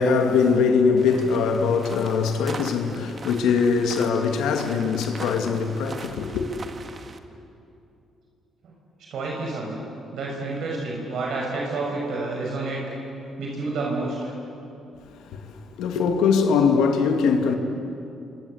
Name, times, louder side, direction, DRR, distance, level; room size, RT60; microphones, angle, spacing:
voice 1, 0.0-6.5 15.0-17.6, left 5 dB, 90° left, 2.3 m, -22 dB
sound 1, 1.0-7.2, right 4 dB, 40° right, 1.8 m, -41 dB
voice 2, 9.1-9.8 10.1-12.8 13.4-14.3, right 3 dB, 70° right, 6.0 m, -29 dB
29.0 x 25.0 x 8.1 m
cardioid pair, 90°, 0 cm